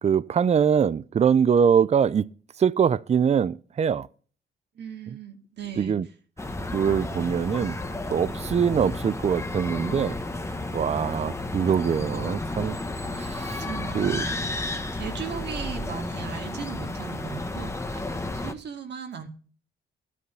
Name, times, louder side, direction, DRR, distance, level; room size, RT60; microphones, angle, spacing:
voice 1, 0.0-2.3 2.6-4.1 5.1-5.2 5.8-6.1 6.7-7.8 8.1-10.1 10.7-12.8 13.2-13.6 13.9-14.2, right 7 dB, 35° right, 0.5 m, -23 dB
voice 2, 4.8-6.0 13.6-14.6 14.9-19.3, right 7 dB, 60° right, 2.3 m, -38 dB
sound 1, 6.4-18.5, left 2 dB, 15° left, 1.3 m, -32 dB
12.5 x 8.4 x 5.6 m
cardioid pair, 90°, 20 cm